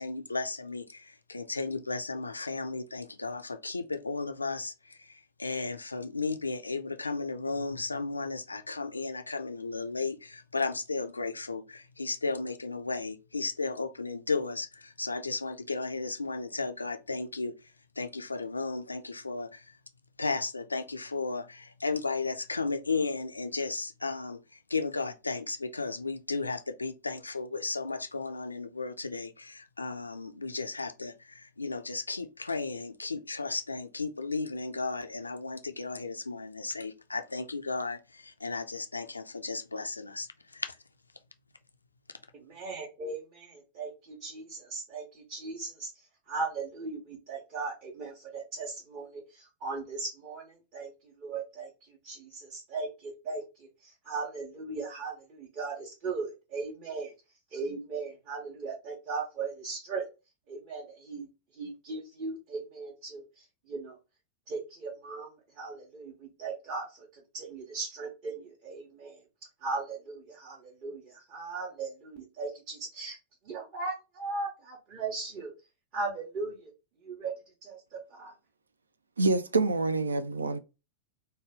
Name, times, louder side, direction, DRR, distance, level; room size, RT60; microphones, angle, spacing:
voice 1, 0.0-19.8 20.2-40.8, left 3 dB, 80° left, 0.3 m, -34 dB
voice 2, 42.4-45.9 46.3-50.9 51.2-57.1 57.5-60.0 60.5-61.3 61.6-63.9 64.5-65.3 65.6-69.2 69.6-73.2 73.4-75.5 75.9-76.7 77.0-77.3 77.6-77.8 78.1-78.3, right 4 dB, 40° right, 0.9 m, -38 dB
voice 3, 79.2-80.6, right 3 dB, 75° right, 0.3 m, -26 dB
3.2 x 2.2 x 3.3 m
figure-of-eight pair, 90°, 0 cm